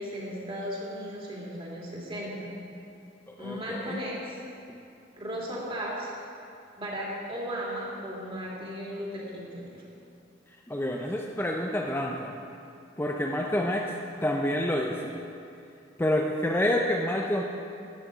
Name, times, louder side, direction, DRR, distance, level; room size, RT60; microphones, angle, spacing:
voice 1, 0.0-2.5 3.4-4.4 5.2-6.1 6.8-9.9 13.5-14.0, equal, 30° right, -4 dB, 2.7 m, -36 dB
voice 2, 3.3-4.0 10.7-12.3 13.0-13.8 14.2-15.1 16.0-17.4, left 1 dB, 10° left, 0 dB, 0.6 m, -28 dB
13.5 x 9.6 x 5.0 m, 2.6 s
head